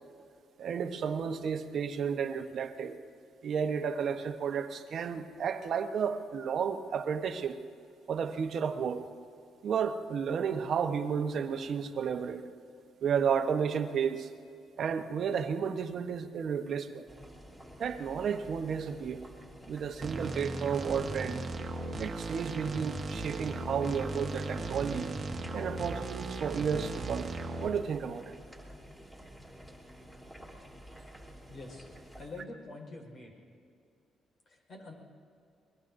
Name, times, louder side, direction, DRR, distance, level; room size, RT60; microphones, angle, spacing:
voice 1, 0.6-3.0 3.4-7.6 8.1-9.0 9.6-12.4 13.0-14.3 14.8-17.1 17.8-19.2 19.7-21.4 22.0-25.1 25.5-27.3 27.6-28.4, right 7 dB, 60° right, 7 dB, 1.0 m, -32 dB
sound 1, 17.1-32.3, equal, 10° left, 3.4 m, -51 dB
sound 2, 20.0-27.7, right 3 dB, 40° right, 1.3 m, -37 dB
voice 2, 31.5-31.9 32.2-33.4 34.5-34.9, left 2 dB, 55° left, 1 dB, 4.7 m, -46 dB
24.5 x 21.5 x 2.7 m, 2.4 s
cardioid pair, 90°, 0 cm